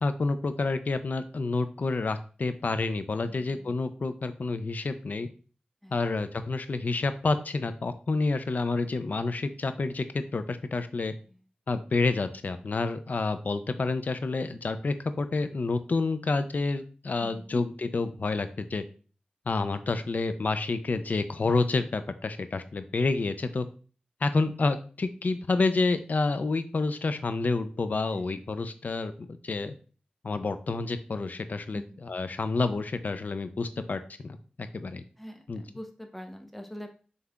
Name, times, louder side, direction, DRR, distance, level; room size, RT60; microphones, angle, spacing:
voice 1, 0.0-5.3 5.9-11.1 11.7-18.8 19.5-23.7 24.2-29.7 30.2-35.0 35.5-35.6, left 3 dB, 65° left, 10 dB, 0.5 m, -29 dB
voice 2, 17.2-17.6 28.1-28.3 31.7-32.0 35.2-36.9, equal, 5° left, 4 dB, 0.9 m, -43 dB
5.4 x 3.3 x 2.3 m, 0.38 s
cardioid pair, 50°, 3 cm